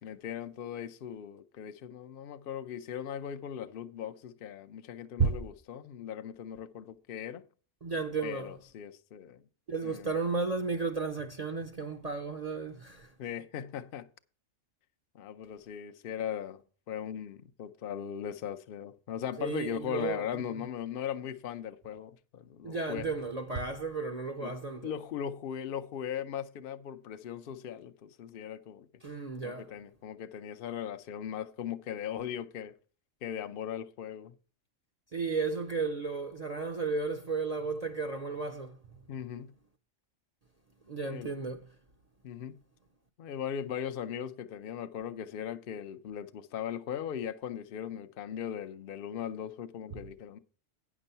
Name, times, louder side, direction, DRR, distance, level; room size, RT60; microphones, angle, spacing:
voice 1, 0.0-7.4 8.2-9.4 9.8-10.2 13.2-14.1 15.1-16.6 16.9-23.1 24.4-24.5 24.8-28.9 29.4-32.7 33.2-34.4 39.1-39.5 41.0-41.3 42.2-42.6 43.2-50.4, left 9 dB, 55° left, 0.7 m, -39 dB
voice 2, 7.8-8.6 9.7-13.1 19.4-20.4 22.6-24.9 29.0-29.7 35.1-38.8 40.9-41.7, right 4 dB, 40° right, 0.6 m, -33 dB
9.7 x 6.1 x 5.5 m
omnidirectional pair, 1.3 m